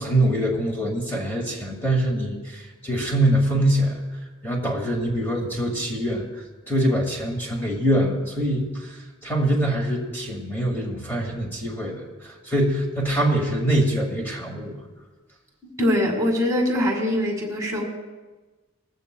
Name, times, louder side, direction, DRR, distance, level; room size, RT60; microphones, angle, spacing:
voice 1, 0.0-4.0 4.4-6.3 6.7-14.7, right 1 dB, 10° left, -2 dB, 1.9 m, -24 dB
voice 2, 15.8-17.9, left 1 dB, 15° right, 0 dB, 2.0 m, -22 dB
20.0 x 15.0 x 2.3 m, 1.2 s
head